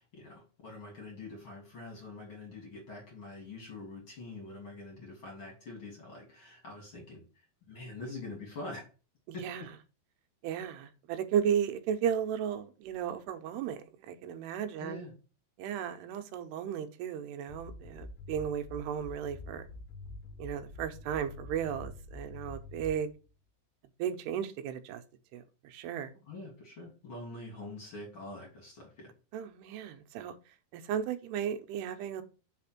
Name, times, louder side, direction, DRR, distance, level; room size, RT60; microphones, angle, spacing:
voice 1, 0.0-8.8 9.3-9.5 14.8-15.1 26.3-29.1, left 2 dB, 35° left, 2.6 m, -45 dB
voice 2, 9.3-9.6 10.4-15.1 15.6-19.7 20.4-23.1 24.0-25.0 25.3-26.1 29.3-30.4 30.7-32.2, right 8 dB, 90° right, 2.8 m, -35 dB
sound 1, 17.5-23.3, left 2 dB, 90° left, 2.8 m, -46 dB
5.8 x 4.2 x 5.9 m
omnidirectional pair, 4.7 m